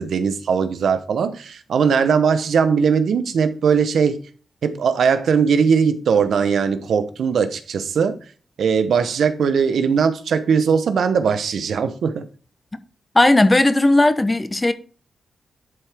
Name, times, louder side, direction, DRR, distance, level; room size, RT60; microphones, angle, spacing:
voice 1, 0.0-4.2 4.6-8.2 8.6-12.3, right 6 dB, 85° right, 0.8 m, -19 dB
voice 2, 13.1-14.7, left 2 dB, 20° left, 0.7 m, -16 dB
11.0 x 4.7 x 3.4 m
wide cardioid pair, 115°, 0 cm